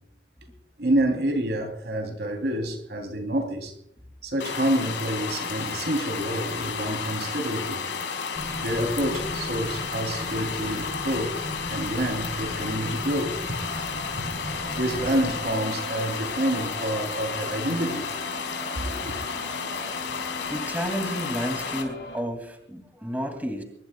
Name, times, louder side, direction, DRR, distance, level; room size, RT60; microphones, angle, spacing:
voice 1, 0.8-3.8 4.2-7.8 8.6-11.4 11.7-13.4 14.2-14.3 14.7-18.1 18.8-19.1, right 1 dB, 65° right, 3.2 m, -28 dB
sound 1, 4.4-21.8, left 5 dB, 85° left, 4.3 m, -32 dB
sound 2, 8.3-15.4, equal, 25° left, 4.1 m, -38 dB
sound 3, 13.6-22.2, left 1 dB, 60° left, 6.8 m, -40 dB
voice 2, 20.5-23.6, equal, 10° right, 2.5 m, -31 dB
24.0 x 22.0 x 2.3 m
head